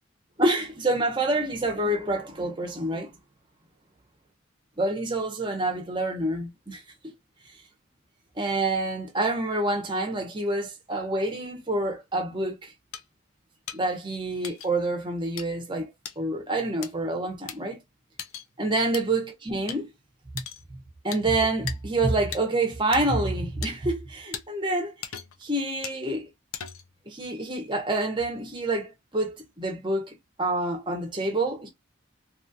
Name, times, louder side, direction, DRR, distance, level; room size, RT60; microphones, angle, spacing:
voice 1, 0.4-3.1 4.8-7.1 8.4-12.7 13.7-15.9 16.2-17.8 18.6-19.9 20.3-20.4 21.0-24.9 25.4-26.3 27.1-31.7, right 2 dB, 20° right, 0.9 m, -27 dB
sound 1, 12.9-13.0 13.7-13.8 14.4-14.7 15.4-15.5 16.0-16.2 16.8-16.9 17.5-17.6 18.2-18.5 18.9-19.0 19.7-19.8 20.4-20.6 21.1-21.2 21.7-21.8 22.3-22.4 22.9-23.0 23.6-23.7 24.3-24.4 25.0-25.4 25.8-26.0 26.5-26.9, left 9 dB, 90° left, 0.5 m, -37 dB
3.0 x 2.4 x 2.7 m
head